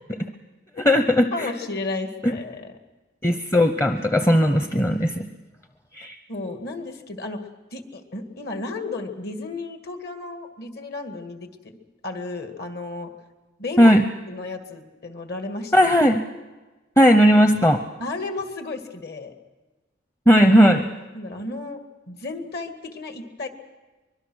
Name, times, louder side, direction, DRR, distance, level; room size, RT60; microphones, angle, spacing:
voice 1, 0.8-1.5 2.2-2.3 3.2-5.3 5.9-6.2 13.8-14.0 15.7-16.2 17.0-17.8 20.3-20.9, equal, 15° left, 7 dB, 0.7 m, -17 dB
voice 2, 1.3-2.7 4.2-4.3 6.3-7.4 7.7-11.5 12.0-13.1 13.6-13.9 14.3-15.7 18.0-19.3 21.1-23.5, left 3 dB, 55° left, 6 dB, 2.1 m, -33 dB
24.0 x 22.0 x 6.4 m, 1.2 s
head